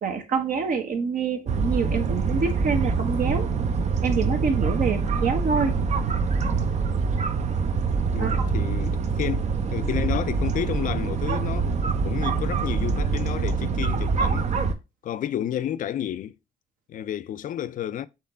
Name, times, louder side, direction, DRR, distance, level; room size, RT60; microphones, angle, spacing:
voice 1, 0.0-3.5 4.0-5.8 8.2-8.5, right 5 dB, 60° right, 1.1 m, -26 dB
sound 1, 1.5-14.8, right 5 dB, 45° right, 0.6 m, -25 dB
voice 2, 8.1-11.7 12.0-14.5 15.0-16.3 16.9-18.1, left 10 dB, 60° left, 0.4 m, -31 dB
4.2 x 3.2 x 3.8 m
cardioid pair, 80°, 16 cm